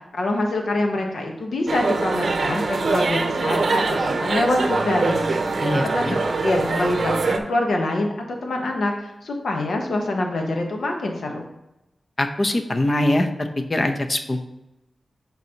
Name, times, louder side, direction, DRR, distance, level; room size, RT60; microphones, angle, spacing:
voice 1, 0.1-5.6 5.8-8.1 8.4-11.5, left 2 dB, 80° left, 2 dB, 1.0 m, -25 dB
sound 1, 1.7-7.4, right 3 dB, 60° right, 0.6 m, -23 dB
voice 2, 5.6-6.2 12.2-14.4, left 1 dB, 35° left, 6 dB, 0.7 m, -23 dB
10.5 x 4.0 x 2.9 m, 0.90 s
wide cardioid pair, 120°, 0 cm